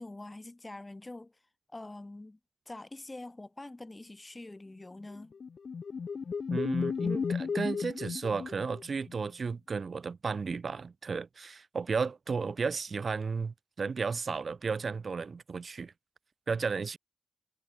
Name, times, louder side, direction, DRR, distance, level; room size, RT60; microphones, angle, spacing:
voice 1, 0.0-1.4 1.7-2.4 2.7-5.3, left 2 dB, 30° left, 2.6 m, -45 dB
sound 1, 5.1-9.1, left 5 dB, 80° left, 0.9 m, -34 dB
voice 2, 6.5-15.9 16.5-17.0, right 5 dB, 70° right, 0.4 m, -34 dB
cardioid pair, 60°, 0 cm